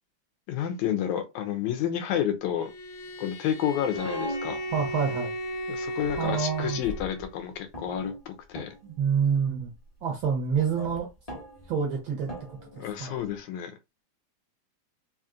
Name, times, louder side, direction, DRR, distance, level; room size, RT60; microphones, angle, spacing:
voice 1, 0.5-2.7 3.2-4.6 5.7-8.7 12.7-13.7, left 10 dB, 90° left, 2.1 m, -30 dB
Bowed string instrument, 2.6-7.3, equal, 60° left, 1.5 m, -36 dB
sound 1, 3.9-5.4 6.0-7.4 7.7-9.1 9.3-9.7 10.5-13.4, equal, 30° left, 0.7 m, -41 dB
voice 2, 4.7-5.3 6.2-6.8 8.8-9.7 10.0-11.1 11.7-12.3 12.7-13.1, right 6 dB, 80° right, 1.1 m, -27 dB
5.0 x 2.8 x 2.4 m
omnidirectional pair, 3.3 m